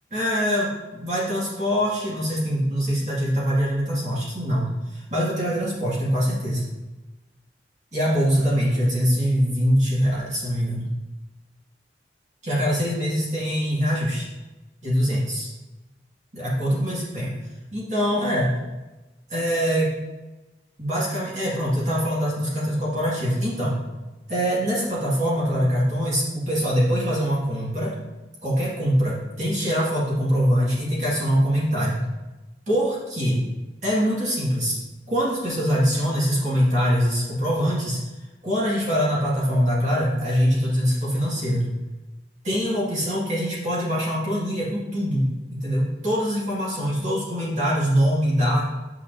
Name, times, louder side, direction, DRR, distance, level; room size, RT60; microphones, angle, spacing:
voice 1, 0.1-6.7 7.9-10.9 12.4-14.3 14.8-15.5 16.3-17.3 17.7-18.6 19.3-19.9 20.8-23.8 24.3-27.9 28.4-32.0 32.7-33.4 33.8-34.8 35.1-38.0 38.4-41.7 42.4-48.6, equal, 40° right, -7 dB, 2.1 m, -23 dB
9.9 x 6.1 x 2.7 m, 1.1 s
head